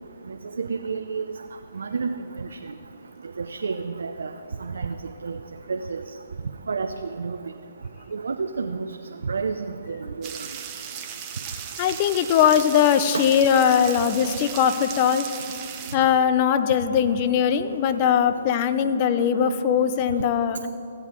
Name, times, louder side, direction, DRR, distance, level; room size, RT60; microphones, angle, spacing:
voice 1, 0.3-1.3 1.7-2.1 2.4-2.5 3.4-4.3 4.6-4.9 5.2-5.4 5.7-6.0 6.7-7.4 8.1-8.9 9.2-10.3 13.1-13.3 13.9-14.0, right 5 dB, 75° right, 6 dB, 0.5 m, -30 dB
sound 1, 10.2-15.9, right 8 dB, 30° right, 0.9 m, -36 dB
voice 2, 11.8-15.2 15.9-20.7, left 8 dB, 35° left, 11 dB, 0.6 m, -20 dB
15.5 x 8.2 x 3.7 m, 2.8 s
figure-of-eight pair, 135°, 0 cm